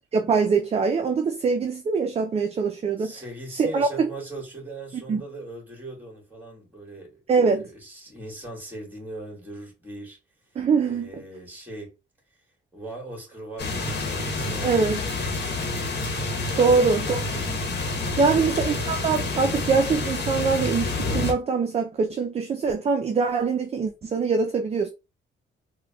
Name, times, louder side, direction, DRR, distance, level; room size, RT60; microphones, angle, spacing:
voice 1, 0.1-3.1 3.6-4.1 5.1-5.2 7.3-7.7 10.6-11.1 14.6-15.0 16.6-17.2 18.2-24.9, right 5 dB, 30° right, 0.4 m, -23 dB
voice 2, 3.0-10.2 10.8-11.9 12.7-15.3 16.5-16.9 18.1-18.5, right 2 dB, 10° right, 1.8 m, -40 dB
sound 1, 13.6-21.3, left 3 dB, 55° left, 1.1 m, -28 dB
3.7 x 2.1 x 2.2 m
cardioid pair, 90°, 20 cm